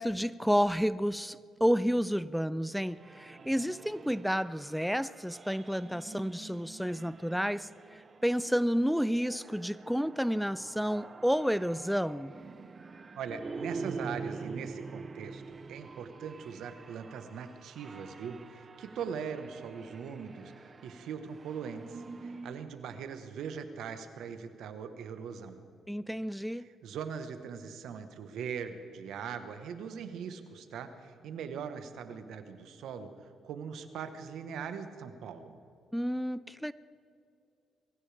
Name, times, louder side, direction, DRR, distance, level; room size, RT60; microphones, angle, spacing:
voice 1, 0.0-12.3 25.9-26.7 35.9-36.7, equal, ahead, 0.3 m, -30 dB
sound 1, 2.8-22.7, right 4 dB, 35° right, 0.8 m, -46 dB
voice 2, 13.1-20.5 20.8-25.6 26.6-33.1 33.4-35.5, right 7 dB, 75° right, 1.3 m, -41 dB
22.0 x 15.5 x 3.5 m
cardioid pair, 90°, 0 cm